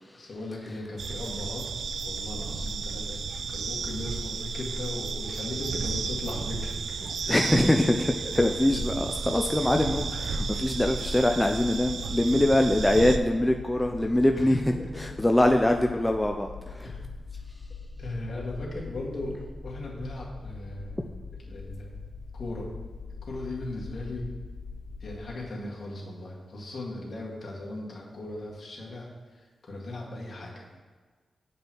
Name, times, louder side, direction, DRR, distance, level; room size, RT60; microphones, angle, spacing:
voice 1, 0.1-1.6 2.0-3.2 3.5-7.1 14.3-15.0 16.8-17.0 18.0-19.4 19.6-21.0 21.4-22.0 22.3-22.7 23.2-24.3 25.0-30.8, left 2 dB, 60° left, -4 dB, 1.9 m, -37 dB
sound 1, 1.0-13.2, right 4 dB, 80° right, 0.3 m, -33 dB
voice 2, 7.3-16.9 21.0-21.1, left 1 dB, 10° left, 3 dB, 0.4 m, -24 dB
sound 2, 8.9-25.3, left 4 dB, 85° left, 1.1 m, -42 dB
9.5 x 5.4 x 3.0 m, 1.5 s
cardioid pair, 75°, 0 cm